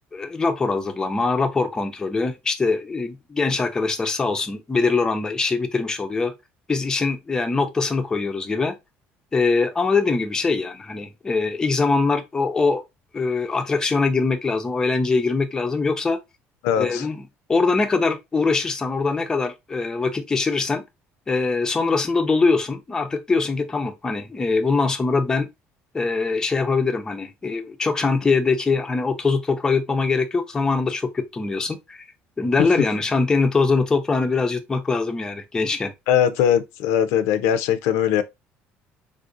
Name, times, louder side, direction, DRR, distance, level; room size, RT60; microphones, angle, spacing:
voice 1, 0.1-6.3 6.7-8.7 9.3-12.8 13.1-16.2 16.8-17.2 17.5-20.8 21.3-25.5 25.9-32.1 32.4-35.9, left 4 dB, 15° left, 0.4 m, -22 dB
voice 2, 16.6-17.1 36.1-38.2, left 9 dB, 85° left, 0.4 m, -20 dB
3.5 x 2.5 x 2.5 m
cardioid pair, 145°, 5 cm